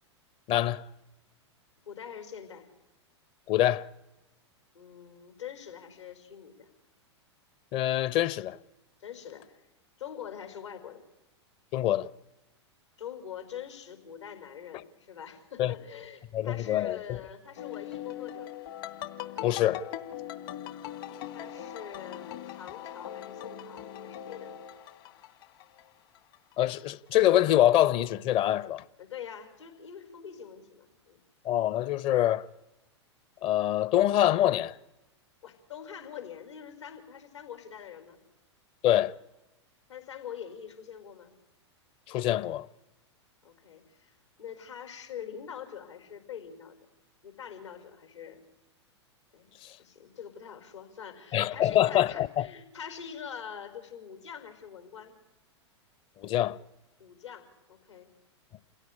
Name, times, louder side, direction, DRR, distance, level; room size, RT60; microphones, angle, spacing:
voice 1, 0.5-0.9 3.5-3.9 7.7-8.6 11.7-12.1 15.6-15.7 16.3-17.2 19.4-19.9 26.6-28.8 31.4-32.5 33.4-34.8 38.8-39.1 42.1-42.7 49.6-49.7 51.3-52.5 56.2-56.6, left 12 dB, 35° left, 0.8 m, -25 dB
voice 2, 1.9-2.7 4.7-6.7 9.0-9.6 10.0-11.0 13.0-18.6 21.3-24.5 29.0-31.2 35.4-38.2 39.9-41.3 43.4-46.9 47.2-48.4 49.3-49.5 49.8-55.1 57.0-58.1, left 8 dB, 75° left, 4.9 m, -44 dB
sound 1, 17.6-25.9 26.2-26.7, left 10 dB, 55° left, 2.4 m, -41 dB
28.5 x 16.5 x 10.0 m
hypercardioid pair, 100°, 15 cm